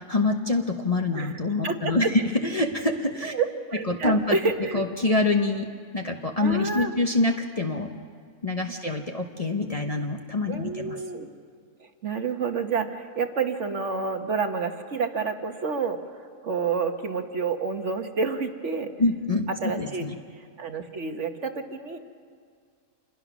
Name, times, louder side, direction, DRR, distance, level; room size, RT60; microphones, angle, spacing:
voice 1, 0.0-3.3 3.9-4.4 4.7-5.7 5.9-7.9 8.4-11.0 19.0-19.5 19.8-20.1, left 2 dB, 30° left, 2 dB, 1.0 m, -25 dB
voice 2, 1.6-2.1 3.2-4.8 6.4-6.9 10.5-11.3 11.8-16.0 16.4-18.9 19.6-20.1 20.3-22.0, right 4 dB, 55° right, 6 dB, 1.4 m, -29 dB
27.5 x 21.0 x 6.1 m, 2.1 s
omnidirectional pair, 1.5 m